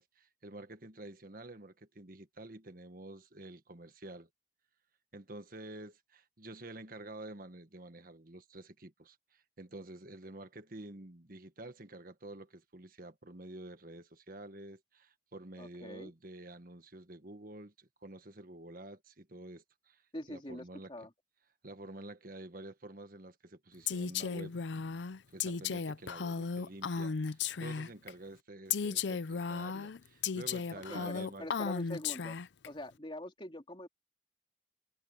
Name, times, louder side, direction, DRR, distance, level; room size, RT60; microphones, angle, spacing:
voice 1, 0.0-4.3 5.1-20.0 20.3-20.9 21.6-24.5 25.3-31.5, right 2 dB, 50° right, 1.6 m, -49 dB
voice 2, 15.6-16.1 20.1-21.1 30.9-32.4 32.7-33.9, left 1 dB, 30° left, 3.2 m, -44 dB
Female speech woman speaking, 23.9-28.1 28.7-32.7, left 6 dB, 80° left, 0.5 m, -35 dB
head